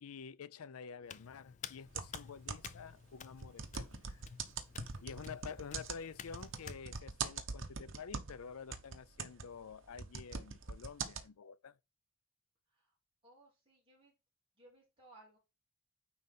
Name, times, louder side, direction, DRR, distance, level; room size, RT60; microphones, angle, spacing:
voice 1, 0.0-4.2 5.0-11.8, left 6 dB, 90° left, 0.5 m, -49 dB
Hands, 1.0-6.8, left 7 dB, 35° left, 0.4 m, -52 dB
sound 1, 1.9-2.9 3.4-8.4 8.7-11.3, right 5 dB, 60° right, 1.0 m, -43 dB
voice 2, 13.2-14.1 14.6-15.4, right 2 dB, 25° right, 3.2 m, -62 dB
9.3 x 3.9 x 3.7 m
head